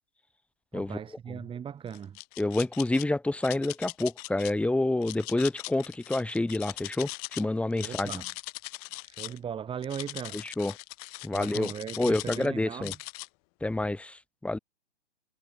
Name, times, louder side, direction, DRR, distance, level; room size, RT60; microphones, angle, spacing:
voice 1, 0.7-2.2 7.8-8.3 9.0-10.5 11.3-13.0, right 8 dB, 15° right, 6.0 m, -38 dB
sound 1, 1.9-3.0 3.4-4.5 5.0-7.4 7.7-9.4 9.8-12.5 12.8-13.3, left 30 dB, 35° left, 2.9 m, -40 dB
voice 2, 2.4-8.2 10.4-10.7 11.2-11.7 12.0-12.9 13.6-14.6, left 2 dB, 5° left, 6.7 m, -28 dB
figure-of-eight pair, 120°, 33 cm